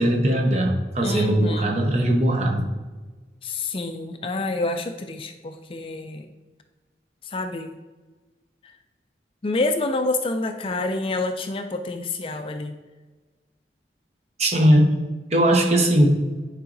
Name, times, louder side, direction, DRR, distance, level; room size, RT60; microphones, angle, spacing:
voice 1, 0.0-2.7 14.4-14.9 15.3-16.2, right 1 dB, 40° right, 2 dB, 0.9 m, -19 dB
voice 2, 1.0-1.8 3.4-6.3 7.2-7.7 8.6-8.7 9.4-12.7, left 2 dB, 30° left, 7 dB, 0.4 m, -28 dB
10.5 x 4.8 x 2.6 m, 1.3 s
head